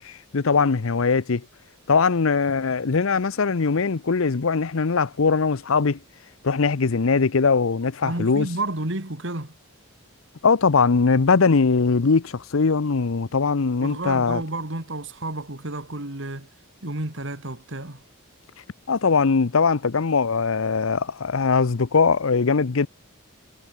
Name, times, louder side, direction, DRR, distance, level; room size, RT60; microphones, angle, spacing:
voice 1, 0.0-1.4 1.9-6.0 6.4-8.5 10.4-14.4 18.9-22.9, left 4 dB, 70° left, 0.7 m, -21 dB
voice 2, 8.0-9.5 13.8-16.5 16.8-18.0, right 2 dB, 60° right, 3.1 m, -31 dB
head